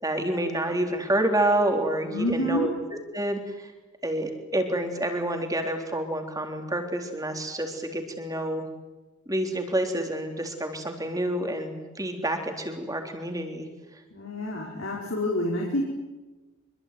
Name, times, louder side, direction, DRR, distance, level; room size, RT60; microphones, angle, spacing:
voice 1, 0.0-2.7 3.1-3.7 4.0-8.7 9.3-13.7, right 1 dB, 15° right, 4 dB, 3.7 m, -28 dB
voice 2, 2.1-2.7 14.1-15.8, left 1 dB, 65° left, -3 dB, 5.5 m, -28 dB
26.0 x 23.5 x 9.4 m, 1.2 s
head